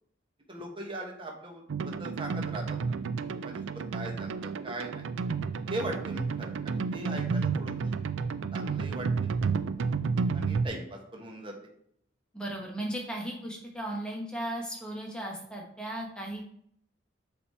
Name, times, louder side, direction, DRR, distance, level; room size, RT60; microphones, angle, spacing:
voice 1, 0.5-3.0 3.4-5.0 5.7-8.0 8.5-9.3 10.3-11.5, right 1 dB, 25° right, 1 dB, 1.2 m, -40 dB
sound 1, 1.7-10.7, right 5 dB, 80° right, 0.4 m, -31 dB
voice 2, 12.3-16.4, right 1 dB, 5° left, -2 dB, 1.4 m, -36 dB
6.9 x 3.5 x 4.3 m, 0.68 s
head